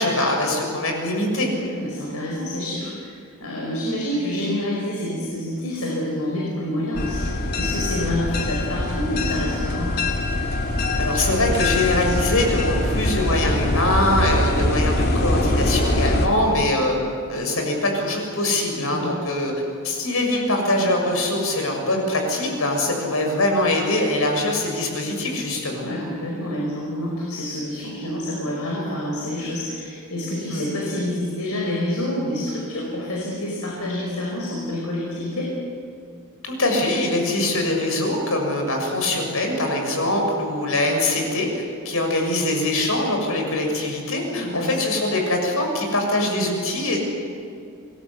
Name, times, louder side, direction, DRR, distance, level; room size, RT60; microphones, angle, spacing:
voice 1, 0.0-1.5 11.0-17.0 17.3-19.5 19.8-25.8 30.5-30.7 36.4-47.0, left 1 dB, 70° left, 2 dB, 6.8 m, -23 dB
voice 2, 1.5-10.0 18.8-19.1 25.8-35.5 44.3-44.8, left 1 dB, 85° left, -2 dB, 5.5 m, -28 dB
sound 1, 6.9-16.3, left 1 dB, 45° left, 3.0 m, -23 dB
28.0 x 21.5 x 8.4 m, 2.3 s
head